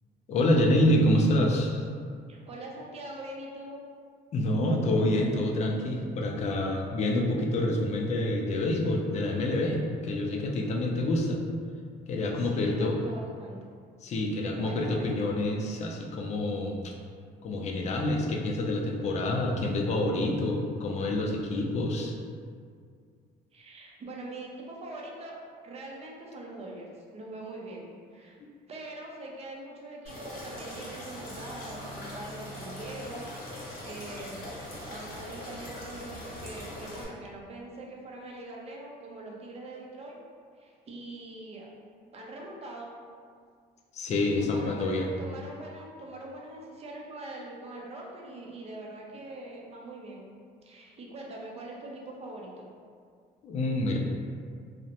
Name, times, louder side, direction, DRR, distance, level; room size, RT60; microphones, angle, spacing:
voice 1, 0.3-1.9 4.3-11.4 12.1-13.0 14.0-16.9 17.4-22.1 43.9-45.1 53.4-54.0, left 1 dB, 40° left, 0 dB, 0.4 m, -27 dB
voice 2, 2.3-3.8 12.4-13.6 14.3-15.1 23.5-25.4 25.6-26.9 27.1-28.4 28.7-33.2 33.5-34.5 34.9-40.2 40.6-41.7 42.1-42.9 44.0-44.1 44.4-50.3 50.6-52.7, right 2 dB, 40° right, -2 dB, 0.5 m, -43 dB
sound 1, 30.1-37.1, left 1 dB, 65° left, 0.9 m, -41 dB
2.5 x 2.0 x 2.8 m, 2.1 s
cardioid pair, 110°, 17 cm